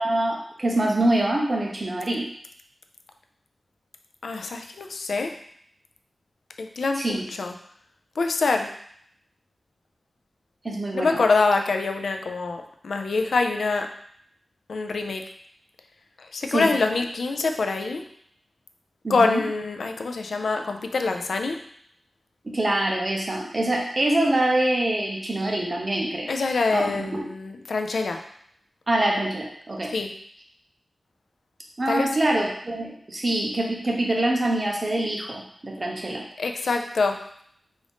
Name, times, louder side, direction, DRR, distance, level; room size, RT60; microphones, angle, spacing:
voice 1, 0.0-2.3 7.0-7.3 10.6-11.2 16.5-16.7 19.0-19.4 22.4-26.3 26.7-27.2 28.9-29.9 31.8-36.2 36.6-36.7, right 1 dB, 35° right, 0 dB, 0.7 m, -25 dB
voice 2, 4.2-5.4 6.6-7.5 8.2-8.7 10.9-13.9 14.7-15.2 16.2-18.0 19.1-21.6 26.3-28.2 29.9-30.1 31.9-32.1 36.4-37.2, left 3 dB, 85° left, 5 dB, 0.4 m, -25 dB
3.7 x 2.5 x 3.4 m, 0.65 s
wide cardioid pair, 100°, 0 cm